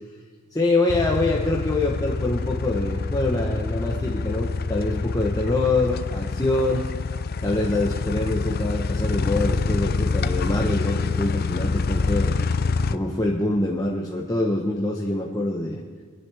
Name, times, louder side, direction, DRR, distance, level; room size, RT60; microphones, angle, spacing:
voice 1, 0.5-6.8 7.4-12.3 12.9-15.8, left 2 dB, 15° left, -2 dB, 1.0 m, -25 dB
sound 1, 0.9-13.0, left 4 dB, 45° left, 0.5 m, -26 dB
25.0 x 10.5 x 3.5 m, 1.5 s
head